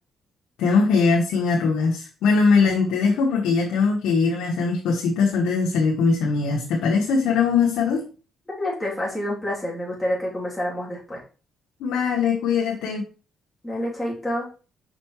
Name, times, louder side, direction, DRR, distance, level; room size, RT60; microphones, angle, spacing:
voice 1, 0.6-8.0 11.8-13.0, left 4 dB, 90° left, -1 dB, 1.1 m, -21 dB
voice 2, 8.6-11.2 13.6-14.5, left 1 dB, 5° left, -6 dB, 3.0 m, -28 dB
5.8 x 5.0 x 3.2 m, 0.35 s
cardioid pair, 90°, 0 cm